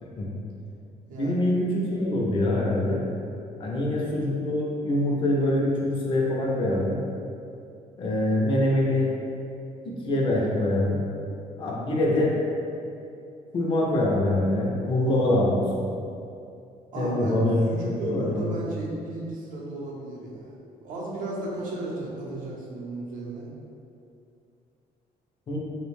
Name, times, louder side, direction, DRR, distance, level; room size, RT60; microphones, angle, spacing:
voice 1, 1.2-3.0 3.6-7.0 8.0-9.1 9.8-11.0 11.6-12.4 13.5-15.6 17.0-17.6 18.0-18.4 25.5-25.6, left 1 dB, 35° left, -3 dB, 0.4 m, -24 dB
voice 2, 15.0-15.4 16.9-17.4 17.6-20.5 20.8-23.5, right 2 dB, 60° right, -5 dB, 0.6 m, -34 dB
2.5 x 2.1 x 3.0 m, 2.6 s
cardioid pair, 145°, 16 cm